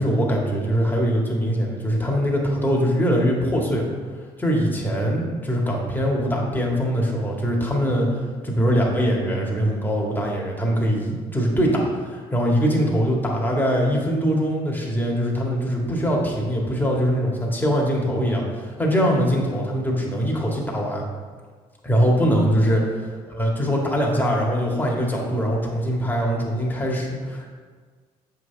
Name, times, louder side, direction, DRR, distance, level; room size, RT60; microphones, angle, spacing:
voice 1, 0.0-3.9 4.4-21.0 21.8-22.8 23.4-27.5, equal, 10° left, -2 dB, 2.0 m, -22 dB
7.4 x 5.8 x 3.5 m, 1.5 s
hypercardioid pair, 55°, 18 cm